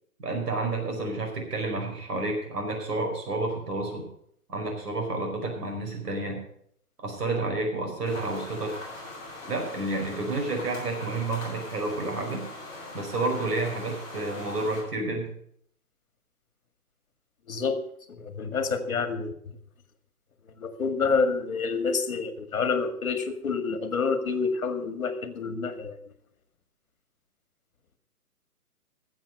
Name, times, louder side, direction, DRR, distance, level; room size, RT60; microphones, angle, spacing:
voice 1, 0.2-4.1 4.5-6.4 7.0-8.7 9.5-12.4 12.9-15.3, right 2 dB, 90° right, 2 dB, 5.1 m, -30 dB
sound 1, 8.0-14.8, left 2 dB, 5° left, 6.2 m, -41 dB
voice 2, 17.5-17.8 18.1-19.3 20.6-26.0, left 4 dB, 60° left, 8 dB, 2.1 m, -28 dB
13.5 x 7.6 x 6.7 m, 0.68 s
hypercardioid pair, 170°, 46 cm